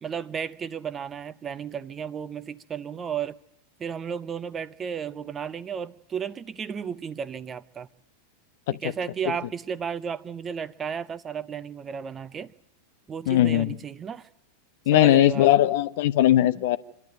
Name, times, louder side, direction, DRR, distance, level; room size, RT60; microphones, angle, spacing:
voice 1, 0.0-3.4 3.8-7.9 8.7-12.5 13.1-14.3 14.9-15.5, right 7 dB, 20° right, 0.8 m, -33 dB
voice 2, 13.3-13.8 14.9-16.8, left 14 dB, 55° left, 0.8 m, -19 dB
27.0 x 12.0 x 9.1 m
figure-of-eight pair, 90°, 0 cm